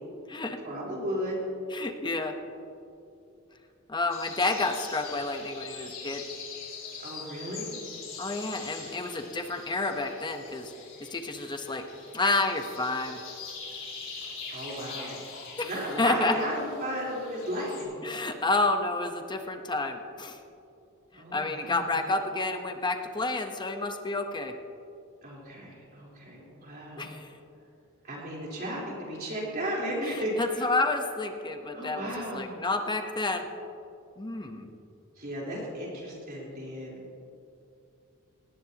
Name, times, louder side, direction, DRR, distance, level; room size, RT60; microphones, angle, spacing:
voice 1, 0.6-1.4 7.0-7.7 14.5-15.2 15.6-18.0 21.2-21.9 25.2-27.1 28.0-30.6 31.7-32.6 35.2-37.0, equal, 45° right, -4 dB, 3.9 m, -34 dB
voice 2, 1.7-2.3 3.9-6.2 8.2-10.7 11.0-11.8 12.1-13.2 15.6-15.7 16.0-16.3 18.0-20.4 21.1-24.5 27.0-27.3 30.0-33.4 34.2-34.7, left 3 dB, 20° left, 5 dB, 1.0 m, -30 dB
sound 1, 4.1-17.8, left 5 dB, 65° left, 4.2 m, -43 dB
19.0 x 17.0 x 2.9 m, 2.7 s
head